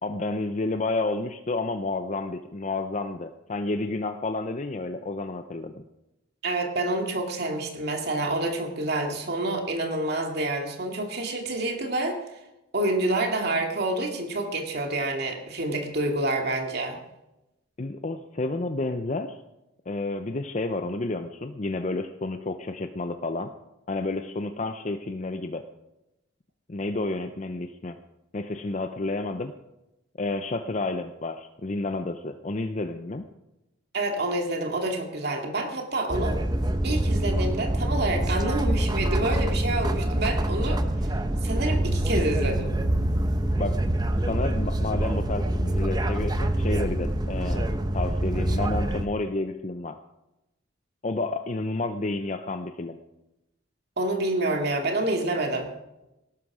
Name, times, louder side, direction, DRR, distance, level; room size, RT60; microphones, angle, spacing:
voice 1, 0.0-5.8 17.8-19.4 19.9-23.5 23.9-25.7 26.7-28.0 28.3-29.5 30.2-33.2 43.6-43.8 44.2-50.0 51.0-53.0, left 2 dB, 40° left, 8 dB, 0.6 m, -30 dB
voice 2, 6.4-12.2 12.7-17.0 33.9-36.4 36.8-42.7 54.0-55.7, right 2 dB, 55° right, 3 dB, 2.4 m, -28 dB
sound 1, 36.1-49.1, right 1 dB, 20° right, 0.9 m, -25 dB
18.0 x 11.5 x 4.9 m, 0.93 s
head